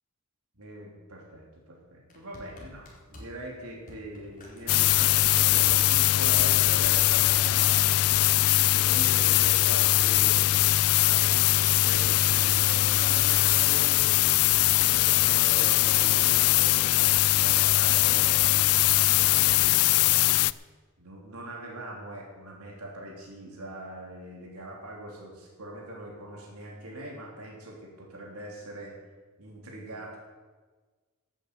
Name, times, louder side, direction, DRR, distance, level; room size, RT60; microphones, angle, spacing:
voice 1, 0.6-8.4 8.7-14.1 14.8-20.3 21.0-28.9 29.4-30.2, right 1 dB, 80° right, -2 dB, 3.4 m, -42 dB
sound 1, 2.1-14.0 14.3-15.3 15.7-16.4 17.3-17.6 18.4-19.0 19.9-20.0, left 1 dB, 40° left, 4.2 m, -52 dB
sound 2, 4.7-20.5, left 16 dB, 70° left, 0.4 m, -21 dB
12.0 x 8.9 x 8.4 m, 1.4 s
head